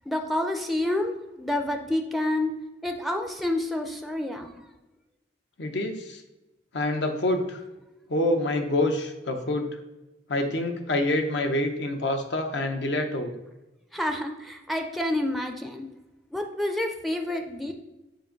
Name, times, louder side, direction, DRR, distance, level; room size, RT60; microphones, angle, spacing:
voice 1, 0.1-2.5 2.8-4.5 13.9-15.9 16.3-17.7, left 1 dB, ahead, 4 dB, 0.4 m, -28 dB
voice 2, 5.6-6.2 6.7-7.6 8.1-9.7 10.3-13.3, left 1 dB, 70° left, 5 dB, 0.8 m, -26 dB
7.5 x 2.6 x 5.1 m, 1.0 s
head